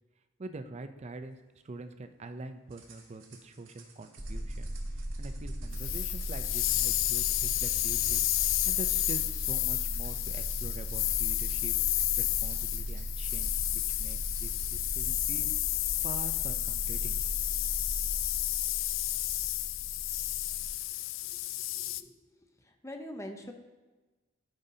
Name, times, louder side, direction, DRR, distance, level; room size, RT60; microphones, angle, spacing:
voice 1, 0.4-8.2 8.7-11.8 12.2-15.5 16.0-17.2, right 3 dB, 35° right, 9 dB, 0.5 m, -45 dB
sound 1, 2.7-14.7, right 5 dB, 90° right, 1.4 m, -56 dB
sound 2, 4.2-20.7, right 1 dB, 20° right, 0.9 m, -38 dB
sound 3, 5.7-22.0, left 16 dB, 70° left, 0.3 m, -31 dB
voice 2, 21.7-22.1 22.8-23.5, left 1 dB, 15° left, 4 dB, 0.7 m, -42 dB
12.0 x 5.4 x 2.7 m, 1.2 s
head